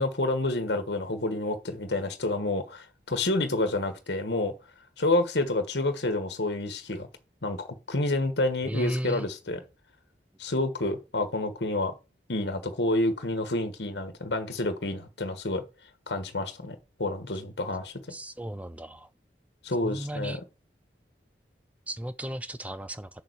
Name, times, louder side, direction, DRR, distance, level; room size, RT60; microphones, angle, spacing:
voice 1, 0.0-4.5 5.0-7.1 7.4-9.6 10.4-11.9 12.3-15.6 16.1-17.9 19.6-20.4, left 2 dB, 75° left, 1.3 m, -29 dB
voice 2, 8.7-9.3 18.1-19.1 19.8-20.4 21.9-23.1, equal, 10° right, 0.5 m, -34 dB
7.3 x 6.8 x 4.6 m
head